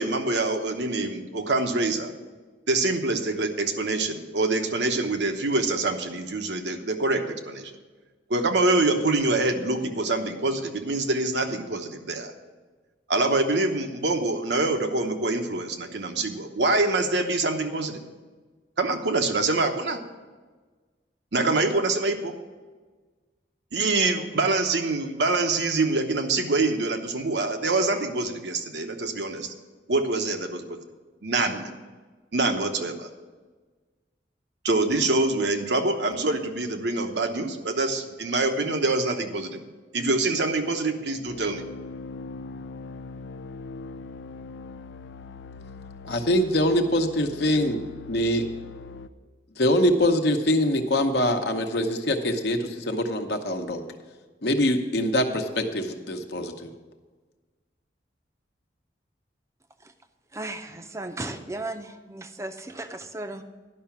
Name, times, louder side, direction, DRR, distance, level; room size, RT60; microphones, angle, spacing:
voice 1, 0.0-2.1 2.7-7.7 8.3-12.3 13.1-18.0 18.8-20.0 21.3-22.3 23.7-29.5 29.9-30.8 31.2-31.7 32.3-33.1 34.6-39.6 39.9-41.6, right 2 dB, 80° right, 5 dB, 1.0 m, -25 dB
sound 1, 41.3-49.1, left 3 dB, 85° left, 0.4 m, -41 dB
voice 2, 46.0-47.8 48.1-48.4 49.6-53.8 54.4-56.7, left 1 dB, 65° left, 5 dB, 0.9 m, -24 dB
voice 3, 60.3-63.4, right 2 dB, 15° right, 8 dB, 0.6 m, -35 dB
11.0 x 5.7 x 7.1 m, 1.4 s
head